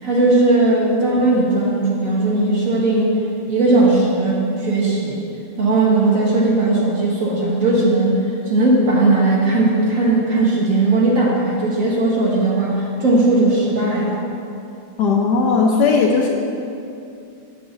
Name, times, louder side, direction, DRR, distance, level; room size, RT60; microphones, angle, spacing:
voice 1, 0.0-3.1 3.4-5.2 5.6-8.2 8.5-14.2, right 2 dB, 45° right, -4 dB, 1.5 m, -17 dB
voice 2, 15.0-16.3, left 4 dB, 70° left, 1 dB, 1.1 m, -16 dB
6.8 x 5.1 x 7.0 m, 2.6 s
omnidirectional pair, 2.1 m